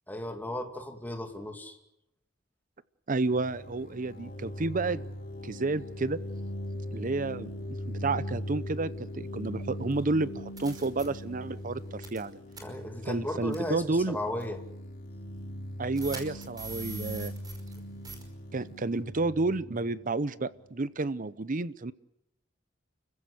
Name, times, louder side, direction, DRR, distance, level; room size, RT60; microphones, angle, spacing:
voice 1, 0.1-1.8 12.6-14.6, left 1 dB, 10° left, 4 dB, 2.5 m, -35 dB
voice 2, 3.1-5.0 5.4-6.2 6.9-7.5 7.9-12.4 13.1-14.2 15.8-17.3 18.5-21.9, right 3 dB, 45° right, 17 dB, 0.8 m, -30 dB
sound 1, 3.2-20.8, left 1 dB, 50° left, 2.9 m, -40 dB
sound 2, 9.9-10.0 10.6-11.1 12.0-12.3 12.5-12.6 13.5-13.7 14.4-14.5 16.0-17.8 18.0-18.2, right 4 dB, 20° right, 5.2 m, -42 dB
30.0 x 15.5 x 8.4 m, 0.84 s
head